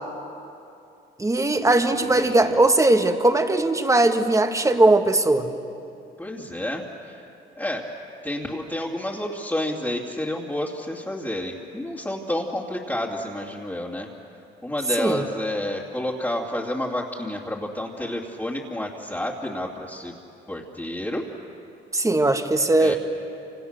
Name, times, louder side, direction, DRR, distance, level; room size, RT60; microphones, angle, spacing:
voice 1, 1.2-5.5 15.0-15.2 21.9-23.0, right 2 dB, 15° right, 7 dB, 1.6 m, -19 dB
voice 2, 1.7-2.6 6.2-7.9 8.2-14.1 14.6-20.1 20.5-21.3 22.8-23.0, left 1 dB, 10° left, -4 dB, 2.5 m, -30 dB
28.0 x 27.0 x 6.6 m, 2.7 s
cardioid pair, 90°, 20 cm